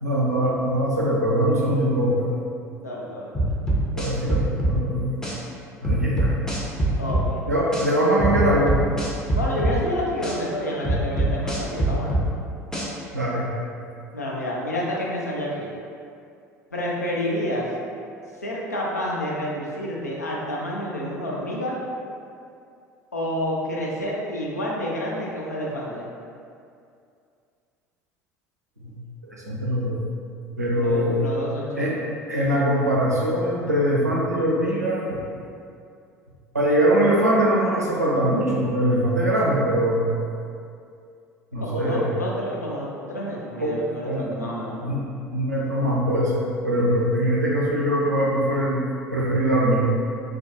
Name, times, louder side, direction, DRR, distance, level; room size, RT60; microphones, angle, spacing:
voice 1, 0.0-2.3 3.9-5.2 5.8-6.3 7.5-8.8 13.1-13.5 28.8-29.0 29.3-30.0 30.6-31.2 31.8-31.9 32.3-35.0 36.5-40.1 41.5-42.1 43.6-43.7 44.0-44.2 44.8-45.0 45.3-48.8 49.1-49.8, right 1 dB, 90° right, -5 dB, 0.4 m, -22 dB
voice 2, 2.8-3.5 7.0-7.4 9.3-12.2 14.1-15.7 16.7-17.7 18.4-21.8 23.1-26.1 30.8-32.0 41.6-44.8, equal, 85° left, -4 dB, 0.4 m, -29 dB
sound 1, 3.3-4.8 5.2-5.3 5.8-7.3 7.7-7.8 8.2-9.8 10.2-10.3 10.8-12.3 12.7-12.9, right 2 dB, 5° left, 0.5 m, -23 dB
2.3 x 2.1 x 2.6 m, 2.4 s
figure-of-eight pair, 65°, 9 cm